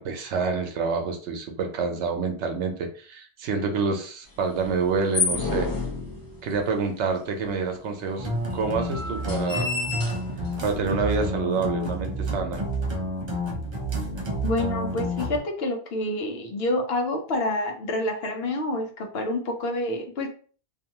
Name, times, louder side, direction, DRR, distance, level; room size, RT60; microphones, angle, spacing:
voice 1, 0.0-5.7 6.4-9.7 10.6-12.6, right 4 dB, 80° right, 4 dB, 0.9 m, -27 dB
sound 1, 4.6-6.7 7.4-7.5 7.7-7.8 8.5-10.6, left 4 dB, 30° left, 0.4 m, -30 dB
sound 2, 8.2-15.4, equal, 50° right, 0.3 m, -29 dB
voice 2, 14.4-20.3, left 1 dB, 65° left, 3 dB, 0.9 m, -28 dB
2.6 x 2.3 x 2.8 m, 0.41 s
omnidirectional pair, 1.2 m